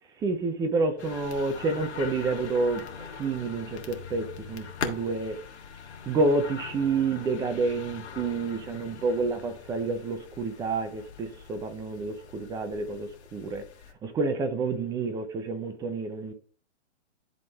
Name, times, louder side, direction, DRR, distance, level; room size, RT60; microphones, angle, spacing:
voice 1, 0.2-5.4 6.1-13.6 14.0-16.3, right 3 dB, 10° right, 0.7 m, -29 dB
sound 1, 1.0-13.9, left 6 dB, 75° left, 1.5 m, -42 dB
10.5 x 3.8 x 4.1 m
hypercardioid pair, 140°, 34 cm